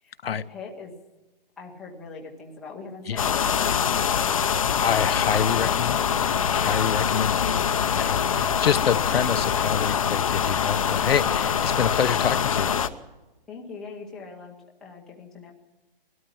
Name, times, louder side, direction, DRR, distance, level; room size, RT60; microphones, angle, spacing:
voice 1, 0.0-0.9 1.6-4.8 13.5-15.5, left 4 dB, ahead, 0.8 m, -42 dB
sound 1, 3.2-12.9, left 7 dB, 35° left, 0.8 m, -24 dB
voice 2, 4.8-6.0 6.5-7.4 7.9-12.7, left 7 dB, 80° left, 1.0 m, -26 dB
20.5 x 13.0 x 9.8 m
hypercardioid pair, 175°, 29 cm